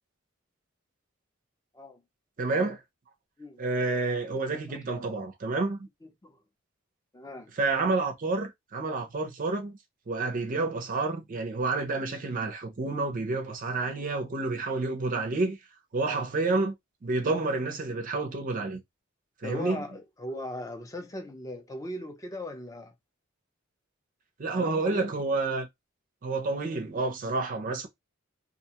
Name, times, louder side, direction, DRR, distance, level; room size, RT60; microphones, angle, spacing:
voice 1, 2.4-2.8 3.6-5.9 7.6-9.8 10.1-15.6 15.9-16.7 17.0-18.8 19.4-19.8 24.4-25.7 26.2-27.9, right 3 dB, 40° right, 0.5 m, -29 dB
voice 2, 6.0-6.4 7.1-7.5 19.4-22.9 24.5-25.1, left 1 dB, 15° left, 0.6 m, -39 dB
2.4 x 2.2 x 2.8 m
head